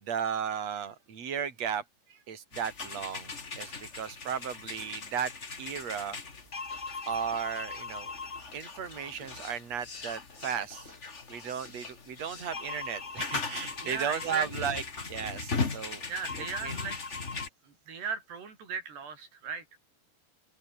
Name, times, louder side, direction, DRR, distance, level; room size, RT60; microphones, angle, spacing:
voice 1, 0.0-1.8 2.1-5.3 5.6-6.2 7.1-8.1 8.5-10.9 11.3-14.8 15.1-16.0 16.6-16.7, right 7 dB, 40° right, 4.7 m, -35 dB
sound 1, 2.5-17.5, left 4 dB, 35° left, 1.2 m, -38 dB
voice 2, 13.8-14.8 16.1-17.0 17.6-19.7, right 5 dB, 70° right, 7.2 m, -37 dB
open air
omnidirectional pair, 5.0 m